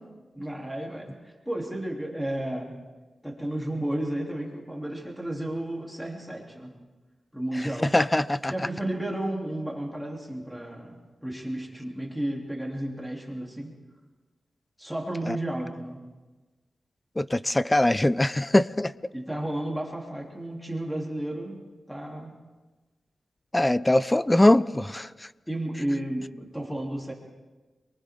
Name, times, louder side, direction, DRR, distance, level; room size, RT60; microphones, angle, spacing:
voice 1, 0.3-2.8 3.2-6.7 7.3-7.9 8.5-13.7 14.8-16.0 19.1-22.3 25.5-27.1, right 1 dB, ahead, -1 dB, 3.2 m, -33 dB
voice 2, 7.8-8.5 15.3-15.4 17.2-18.9 23.5-25.1, left 1 dB, 15° left, 17 dB, 0.5 m, -22 dB
30.0 x 23.5 x 3.7 m, 1.3 s
wide cardioid pair, 100°, 0 cm